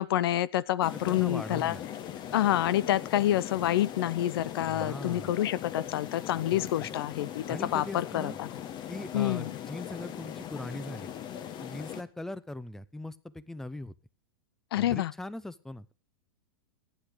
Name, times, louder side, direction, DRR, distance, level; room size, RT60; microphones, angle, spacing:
voice 1, 0.0-1.8 2.3-8.5 9.1-9.5 14.7-15.1, left 13 dB, 65° left, 0.7 m, -28 dB
sound 1, 0.8-12.0, left 10 dB, 35° left, 1.5 m, -40 dB
voice 2, 0.9-1.8 4.7-5.3 6.5-6.9 7.5-8.4 8.9-11.1 11.6-13.9 14.8-15.9, left 1 dB, 5° left, 0.7 m, -40 dB
15.5 x 10.0 x 5.0 m
hypercardioid pair, 115°, 13 cm